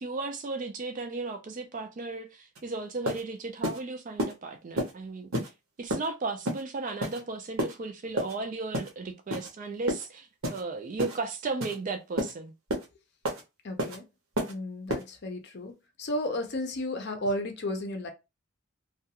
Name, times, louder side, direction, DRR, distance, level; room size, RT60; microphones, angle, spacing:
voice 1, 0.0-5.3 5.8-12.5, right 3 dB, 35° right, 0.3 m, -35 dB
sound 1, 2.6-2.7 3.1-3.2 3.6-3.8 4.2-4.3 4.8-4.9 5.3-5.5 5.9-6.1 6.5-6.6 7.0-7.2 7.6-7.7 8.2-8.3 8.7-8.9 9.3-9.5 9.9-10.1 10.4-10.6 11.0-11.2 11.6-11.8 12.2-12.3 12.7-12.9 13.3-13.4 13.8-14.0 14.4-14.5 14.9-15.0, equal, 70° right, 0.8 m, -30 dB
voice 2, 13.6-14.0 14.5-15.7 16.0-18.1, left 1 dB, 50° left, 0.5 m, -33 dB
2.3 x 2.2 x 2.8 m
head